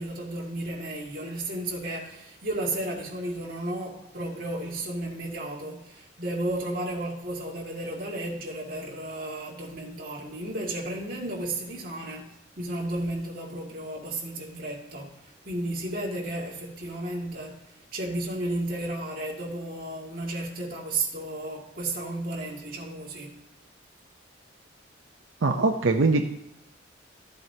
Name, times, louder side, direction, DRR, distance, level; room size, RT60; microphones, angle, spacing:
voice 1, 0.0-23.4, right 1 dB, 45° right, 2.0 m, -33 dB
voice 2, 25.4-26.3, right 3 dB, 90° right, 0.6 m, -22 dB
13.5 x 7.7 x 2.8 m
head